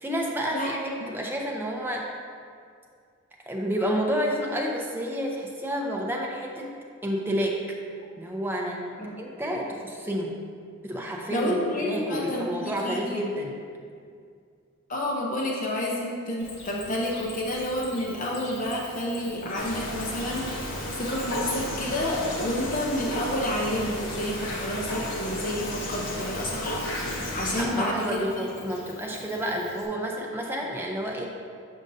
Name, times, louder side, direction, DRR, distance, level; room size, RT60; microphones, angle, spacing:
voice 1, 0.0-2.0 3.5-6.8 7.0-7.6 8.2-8.9 9.2-10.4 10.8-13.6 27.6-31.3, equal, 10° right, -1 dB, 0.5 m, -30 dB
voice 2, 11.3-13.2 14.9-28.5, left 1 dB, 35° left, -3 dB, 0.6 m, -30 dB
Cricket, 16.4-29.9, left 2 dB, 85° left, 1.2 m, -45 dB
sound 1, 19.6-27.7, left 1 dB, 60° left, 0.9 m, -33 dB
6.6 x 6.2 x 2.6 m, 2.3 s
head